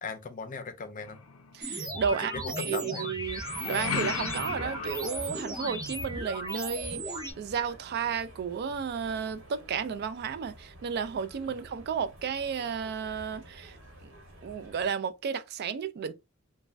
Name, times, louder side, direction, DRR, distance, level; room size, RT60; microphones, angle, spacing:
voice 1, 0.0-1.2 2.2-3.1, left 4 dB, 40° left, 0.5 m, -38 dB
sound 1, 1.0-1.8 3.2-5.9, left 6 dB, 90° left, 0.5 m, -36 dB
voice 2, 1.5-13.8 14.4-16.1, right 6 dB, 50° right, 0.3 m, -33 dB
sound 2, 1.6-7.3, right 1 dB, 20° right, 0.6 m, -36 dB
sound 3, 3.2-14.9, right 1 dB, 75° right, 1.2 m, -51 dB
2.5 x 2.2 x 3.2 m
head